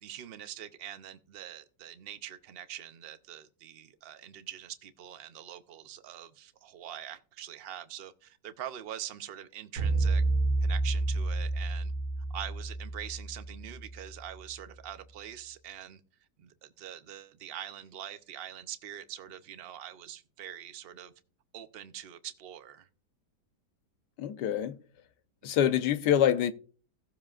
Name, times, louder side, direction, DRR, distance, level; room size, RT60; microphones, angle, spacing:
voice 1, 0.0-10.2 10.6-11.9 12.3-16.0 16.4-21.1 21.5-22.9 25.4-25.6, right 11 dB, 65° right, 0.6 m, -44 dB
sound 1, 9.8-14.1, right 2 dB, 90° right, 2.1 m, -30 dB
voice 2, 24.2-24.8 25.4-26.5, left 10 dB, 80° left, 1.3 m, -25 dB
16.5 x 7.3 x 2.4 m
omnidirectional pair, 1.8 m